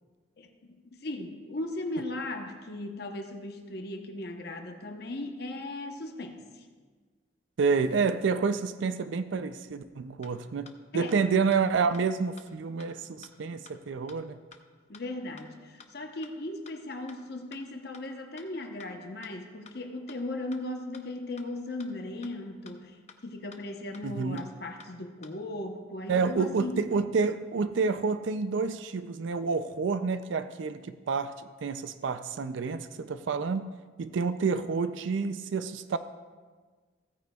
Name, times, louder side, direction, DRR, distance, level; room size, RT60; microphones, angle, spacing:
voice 1, 0.4-6.6 10.9-11.1 14.9-26.8, left 2 dB, 55° left, 4 dB, 0.9 m, -37 dB
voice 2, 7.6-14.4 24.0-24.4 26.1-33.7 34.0-36.0, right 5 dB, 75° right, 11 dB, 0.4 m, -29 dB
sound 1, 10.2-10.3 10.7-10.8 11.1-11.2 11.5-11.6 11.9-12.0 12.4-12.5 12.8-12.9 13.2-13.3 13.7-13.8 14.1-14.2 14.5-14.6 14.9-15.0 15.4-15.5 15.8-15.9 16.2-16.3 16.7-16.8 17.1-17.2 17.5-17.6 17.9-18.0 18.4-18.5 18.8-18.9 19.2-19.3 19.7-19.8 20.1-20.2 20.5-20.6 20.9-21.0 21.4-21.5 21.8-21.9 22.2-22.3 22.7-22.8 23.1-23.2 23.5-23.6 23.9-24.0 24.4-24.5 24.8-24.9 25.2-25.3, left 6 dB, 35° left, 0.6 m, -51 dB
15.5 x 9.1 x 2.3 m, 1.4 s
head